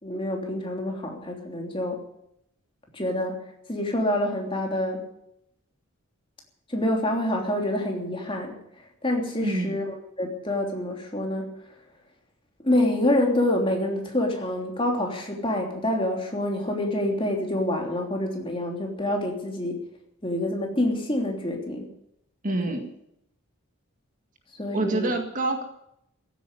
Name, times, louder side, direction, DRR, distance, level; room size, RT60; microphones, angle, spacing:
voice 1, 0.0-2.0 2.9-3.4 3.7-5.0 6.7-8.5 9.0-11.5 12.6-19.8 20.2-21.9 22.5-22.8 24.6-25.2, left 1 dB, 25° left, 1 dB, 3.2 m, -27 dB
voice 2, 9.4-9.8 22.4-22.8 24.7-25.6, right 2 dB, 35° right, 5 dB, 1.9 m, -26 dB
15.5 x 9.3 x 9.7 m, 0.77 s
head